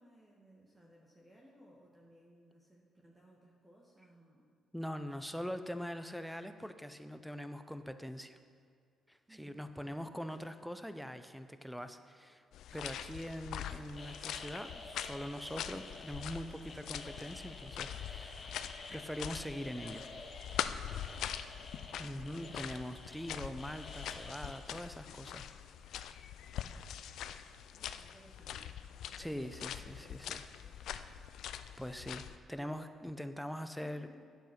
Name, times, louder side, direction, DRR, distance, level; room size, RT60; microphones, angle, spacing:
voice 1, 0.0-4.4 9.3-10.1 22.2-22.9 27.7-30.9 32.5-33.1 33.8-34.3, equal, 20° right, -3 dB, 1.4 m, -62 dB
voice 2, 4.7-8.4 9.1-12.4 12.7-18.5 18.9-20.1 22.0-25.5 29.2-30.4 30.8-31.0 31.8-32.2 32.5-34.3, equal, ahead, 9 dB, 0.6 m, -43 dB
sound 1, 12.5-32.4, left 9 dB, 80° left, 0.4 m, -43 dB
sound 2, 13.9-24.6, left 3 dB, 40° left, 1.2 m, -51 dB
9.2 x 7.1 x 5.9 m, 2.2 s
cardioid pair, 90°, 0 cm